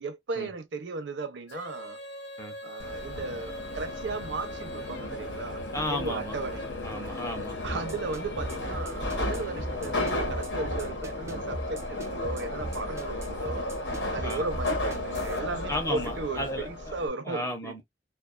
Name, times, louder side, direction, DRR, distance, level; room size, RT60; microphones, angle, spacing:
voice 1, 0.0-2.0 2.6-5.6 5.9-6.7 7.6-13.7 14.1-17.8, right 3 dB, 80° right, 0.6 m, -36 dB
Female singing, 1.5-10.6, left 2 dB, 70° left, 0.6 m, -43 dB
Subway metro underground, 2.8-17.1, left 1 dB, 90° left, 1.1 m, -34 dB
voice 2, 5.7-6.4 6.8-8.0 14.2-14.4 15.7-16.7 17.2-17.8, left 1 dB, 15° left, 0.7 m, -34 dB
sound 1, 7.6-15.4, right 1 dB, 15° right, 0.3 m, -38 dB
2.3 x 2.3 x 2.3 m
head